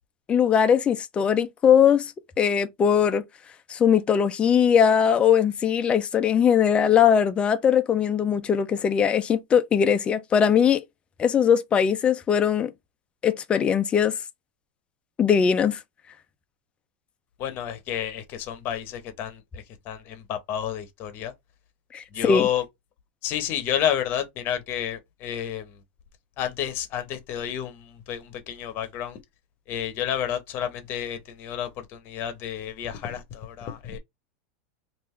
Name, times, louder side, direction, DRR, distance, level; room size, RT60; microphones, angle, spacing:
voice 1, 0.3-2.1 2.4-3.2 3.7-10.8 11.2-12.7 13.2-14.2 15.2-15.8 21.9-22.5, left 8 dB, 20° left, 0.4 m, -20 dB
voice 2, 17.4-21.3 22.1-22.6 23.2-25.7 26.4-29.2 29.7-34.0, left 10 dB, 35° left, 0.8 m, -30 dB
3.4 x 2.5 x 3.1 m
supercardioid pair, 150°, 6 cm